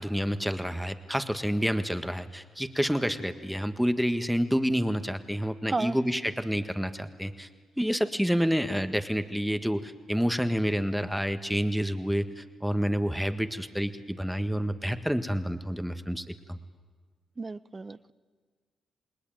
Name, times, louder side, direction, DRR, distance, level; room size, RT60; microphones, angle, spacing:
voice 1, 0.0-7.5 7.8-16.6, equal, ahead, 9 dB, 1.6 m, -28 dB
voice 2, 5.7-6.0 17.4-18.1, right 3 dB, 30° right, 16 dB, 0.8 m, -33 dB
28.5 x 20.0 x 9.2 m, 1.5 s
cardioid pair, 65°, 0 cm